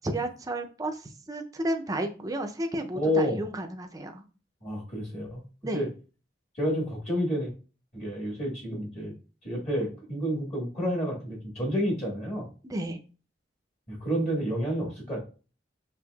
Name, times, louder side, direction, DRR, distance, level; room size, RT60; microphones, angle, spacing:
voice 1, 0.0-4.2 5.6-5.9 12.6-13.0, right 1 dB, 20° right, 5 dB, 0.4 m, -32 dB
voice 2, 2.9-3.4 4.6-5.4 5.7-5.9 6.6-7.5 7.9-9.1 9.4-12.5 13.9-15.2, equal, 35° left, -2 dB, 1.3 m, -29 dB
5.3 x 2.6 x 2.3 m, 0.35 s
head